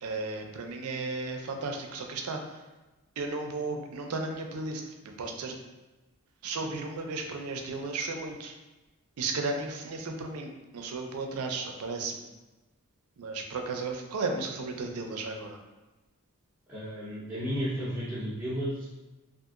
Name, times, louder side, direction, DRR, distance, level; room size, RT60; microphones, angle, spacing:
voice 1, 0.0-2.6 3.2-5.6 6.4-8.5 9.2-12.2 13.2-15.6, right 3 dB, 80° right, 4 dB, 0.4 m, -34 dB
voice 2, 16.7-18.8, equal, 5° right, -13 dB, 0.6 m, -33 dB
2.7 x 2.4 x 2.4 m, 1.1 s
head